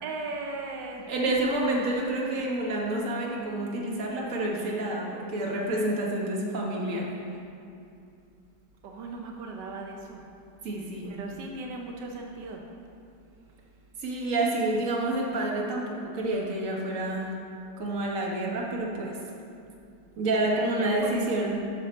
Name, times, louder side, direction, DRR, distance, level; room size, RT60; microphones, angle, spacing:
voice 1, 0.0-1.4 8.8-10.2 11.1-12.6 20.5-21.2, right 3 dB, 85° right, 1 dB, 1.4 m, -38 dB
voice 2, 1.1-7.1 10.6-11.1 14.0-17.3 17.8-19.2 20.2-21.6, right 1 dB, 50° right, -2 dB, 1.6 m, -28 dB
11.0 x 6.1 x 4.3 m, 2.6 s
omnidirectional pair, 1.8 m